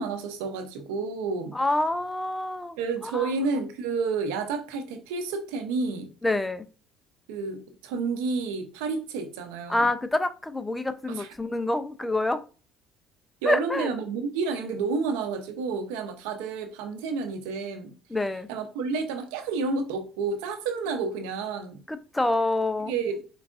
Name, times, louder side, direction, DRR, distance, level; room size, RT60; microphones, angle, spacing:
voice 1, 0.0-1.6 2.8-6.1 7.3-9.9 11.1-11.3 13.4-17.9 18.5-21.8 22.9-23.2, right 4 dB, 90° right, 0.7 m, -30 dB
voice 2, 1.5-2.8 3.0-3.3 6.2-6.7 9.7-12.4 13.4-13.9 18.1-18.5 21.9-22.9, left 2 dB, 10° left, 0.5 m, -27 dB
4.6 x 3.5 x 2.5 m
supercardioid pair, 90°, 0 cm